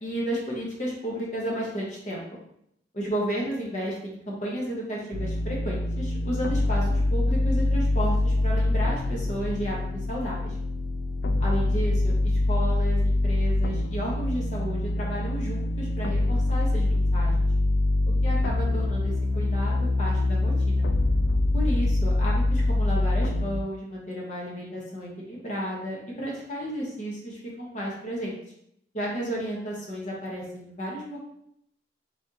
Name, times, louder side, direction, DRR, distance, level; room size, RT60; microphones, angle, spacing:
voice 1, 0.0-2.2 2.9-10.5 11.4-17.5 18.2-20.8 21.5-28.4 28.9-31.2, equal, 45° left, -3 dB, 0.9 m, -33 dB
sound 1, 5.1-23.6, left 2 dB, 65° left, 0.3 m, -24 dB
3.7 x 3.4 x 2.7 m, 0.74 s
head